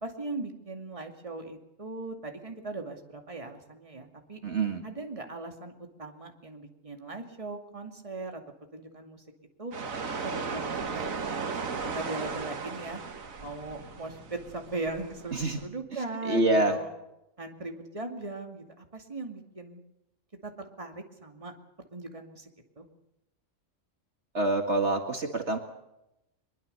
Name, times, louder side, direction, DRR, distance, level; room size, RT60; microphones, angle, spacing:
voice 1, 0.0-4.4 4.8-8.4 8.7-9.2 9.6-9.7 10.2-11.3 11.6-11.7 11.9-13.0 13.4-16.9 17.4-19.8 20.4-20.5 20.8-21.5 21.9-22.5 22.8-22.9, right 2 dB, 25° right, 4 dB, 2.5 m, -39 dB
voice 2, 4.4-4.8 15.3-15.6 16.2-16.8 24.3-25.6, right 2 dB, 55° right, 5 dB, 2.2 m, -26 dB
sound 1, 9.7-15.7, right 5 dB, 85° right, 1.9 m, -36 dB
23.0 x 22.5 x 6.9 m, 0.88 s
omnidirectional pair, 1.4 m